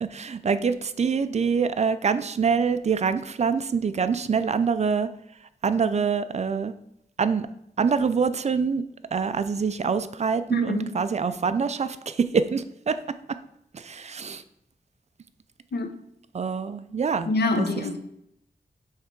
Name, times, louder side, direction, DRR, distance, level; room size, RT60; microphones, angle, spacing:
voice 1, 0.0-5.1 5.6-6.7 7.2-7.5 7.8-8.8 9.1-13.0 13.7-14.4 16.3-17.3 17.6-17.7, right 5 dB, 45° right, 12 dB, 0.4 m, -25 dB
voice 2, 10.5-11.1 15.7-15.9 17.3-18.0, left 2 dB, 85° left, 6 dB, 0.8 m, -26 dB
6.5 x 3.3 x 4.6 m, 0.77 s
wide cardioid pair, 100°, 17 cm